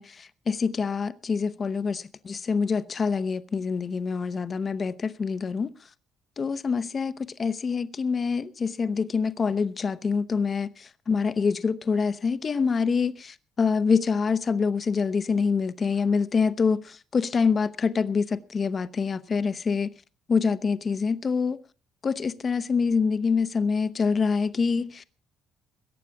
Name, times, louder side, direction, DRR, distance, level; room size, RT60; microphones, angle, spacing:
voice 1, 0.0-5.7 6.4-19.9 20.3-21.6 22.0-25.0, left 5 dB, 30° left, 0.8 m, -26 dB
22.0 x 9.0 x 4.7 m
cardioid pair, 140°, 0 cm